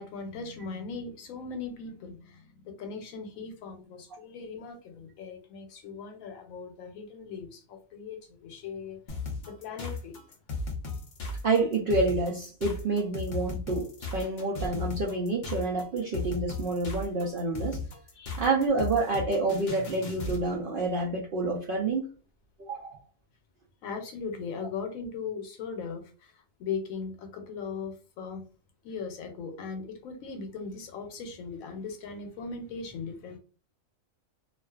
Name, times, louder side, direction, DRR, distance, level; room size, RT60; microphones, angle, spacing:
voice 1, 0.0-10.4 18.1-18.4 23.8-28.5 28.8-33.4, left 5 dB, 90° left, 5 dB, 1.0 m, -39 dB
sound 1, 9.1-20.5, left 3 dB, 65° left, 0.4 m, -36 dB
voice 2, 11.4-17.8 18.4-22.1 22.6-23.0, right 3 dB, 70° right, -1 dB, 0.5 m, -28 dB
2.4 x 2.2 x 2.3 m, 0.37 s
omnidirectional pair, 1.4 m